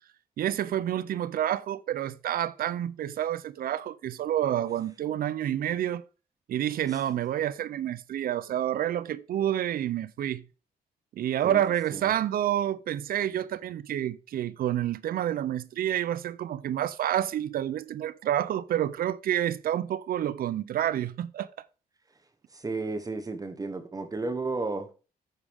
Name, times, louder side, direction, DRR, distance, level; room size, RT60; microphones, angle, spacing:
voice 1, 0.4-6.0 6.5-10.4 11.2-21.5, right 11 dB, 70° right, 0.5 m, -29 dB
voice 2, 11.4-12.1 22.5-24.9, right 3 dB, 25° right, 1.2 m, -33 dB
14.0 x 4.9 x 3.5 m
cardioid pair, 100°, 16 cm